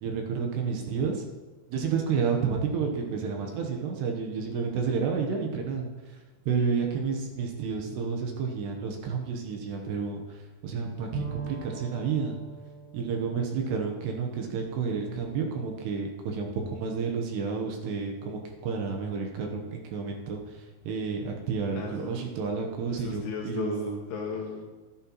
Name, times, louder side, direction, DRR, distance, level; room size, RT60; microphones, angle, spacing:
voice 1, 0.0-1.2 1.7-5.9 6.5-12.4 12.9-24.0, right 5 dB, 70° right, 2 dB, 2.8 m, -30 dB
Bowed string instrument, 11.1-14.9, right 5 dB, 50° right, 2.2 m, -41 dB
voice 2, 21.7-22.2 22.8-24.7, left 6 dB, 70° left, 1 dB, 2.8 m, -36 dB
13.5 x 11.0 x 3.0 m, 1.2 s
omnidirectional pair, 5.5 m